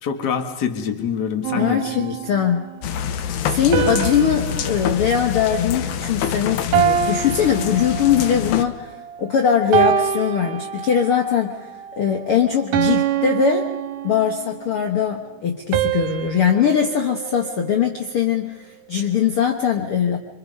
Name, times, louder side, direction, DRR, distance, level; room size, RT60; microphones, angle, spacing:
voice 1, 0.0-2.1, left 7 dB, 40° left, 6 dB, 1.7 m, -25 dB
sound 1, 1.4-2.7 3.7-6.2 6.7-8.4 9.0-9.3 9.7-11.3 11.7-12.0 12.7-14.6 15.7-18.1, right 9 dB, 90° right, 2.6 m, -25 dB
voice 2, 1.5-2.6 3.1-13.7 14.0-20.2, left 8 dB, 55° left, 4 dB, 1.8 m, -21 dB
sound 2, 2.8-8.6, left 8 dB, 75° left, 2.4 m, -26 dB
26.0 x 25.0 x 5.4 m, 1.0 s
omnidirectional pair, 3.7 m